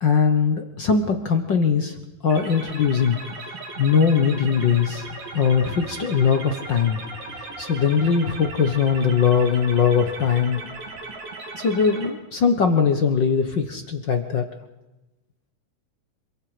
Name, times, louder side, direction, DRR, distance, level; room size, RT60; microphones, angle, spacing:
voice 1, 0.0-2.0 2.2-3.2 3.5-5.1 5.3-7.0 7.6-10.6 11.6-14.5, left 6 dB, 65° left, 6 dB, 1.1 m, -20 dB
sound 1, 2.3-12.1, right 3 dB, 80° right, 5.0 m, -37 dB
26.5 x 24.0 x 5.0 m, 1.0 s
omnidirectional pair, 3.9 m